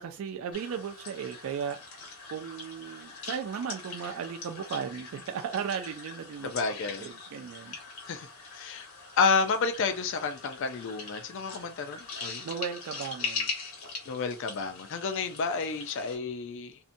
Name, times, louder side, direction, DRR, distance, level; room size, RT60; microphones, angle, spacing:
voice 1, 0.0-1.8 2.3-6.5 7.0-7.8 12.4-13.5, right 7 dB, 70° right, 0.3 m, -36 dB
sound 1, 0.5-16.2, left 4 dB, 80° left, 1.1 m, -41 dB
voice 2, 6.4-7.1 8.1-8.9 9.2-12.5 14.1-16.8, left 5 dB, 60° left, 0.4 m, -30 dB
2.6 x 2.1 x 2.5 m
head